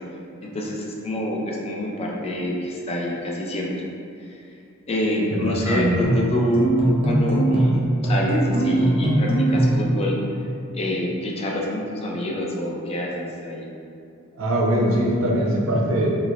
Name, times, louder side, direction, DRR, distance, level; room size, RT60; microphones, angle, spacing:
voice 1, 0.4-3.7 4.3-4.4 4.9-6.7 7.0-10.2 10.7-13.7, left 1 dB, 30° left, -2 dB, 0.4 m, -26 dB
voice 2, 5.3-6.0 14.4-16.1, right 1 dB, 80° right, -2 dB, 0.5 m, -22 dB
sound 1, 6.0-9.9, right 1 dB, 25° right, 0.6 m, -20 dB
3.0 x 2.0 x 3.6 m, 2.5 s
head